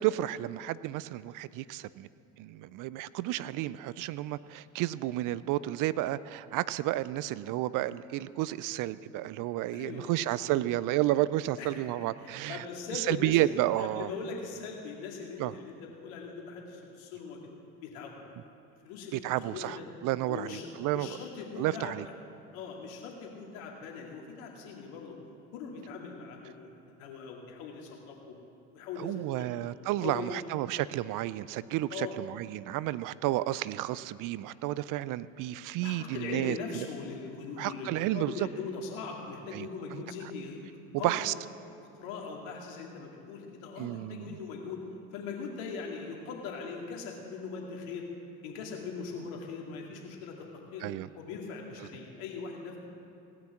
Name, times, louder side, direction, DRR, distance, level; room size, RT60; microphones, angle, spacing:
voice 1, 0.0-2.1 2.4-12.6 12.9-14.1 15.4-15.5 19.1-19.8 20.0-21.2 21.6-22.0 29.0-36.9 37.6-38.5 39.5-39.7 41.0-41.3 43.8-44.3 50.8-51.1, right 15 dB, 55° right, 17 dB, 0.5 m, -31 dB
voice 2, 9.7-10.3 11.6-11.7 12.2-13.5 13.8-17.4 17.8-18.2 18.8-19.8 20.3-22.0 22.5-25.2 25.5-26.7 27.0-28.4 28.7-29.5 29.9-30.4 31.9-32.2 35.8-40.6 41.0-41.2 41.8-44.8 45.1-48.1 48.4-50.5 50.7-50.9 51.1-52.8, left 5 dB, 75° left, 0 dB, 2.3 m, -40 dB
17.5 x 6.0 x 7.3 m, 2.7 s
hypercardioid pair, 70°, 40 cm